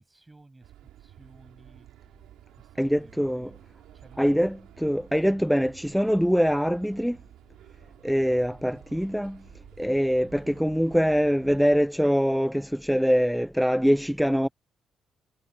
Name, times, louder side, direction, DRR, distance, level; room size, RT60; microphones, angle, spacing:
voice 1, 0.0-1.9 2.6-3.5 3.9-4.8 8.2-8.4, right 2 dB, 15° right, 7.6 m, -54 dB
sound 1, 0.6-11.8, right 13 dB, 90° right, 3.4 m, -52 dB
voice 2, 2.8-3.5 4.2-7.2 8.0-9.4 9.8-14.5, equal, ahead, 0.4 m, -23 dB
cardioid pair, 90°, 0 cm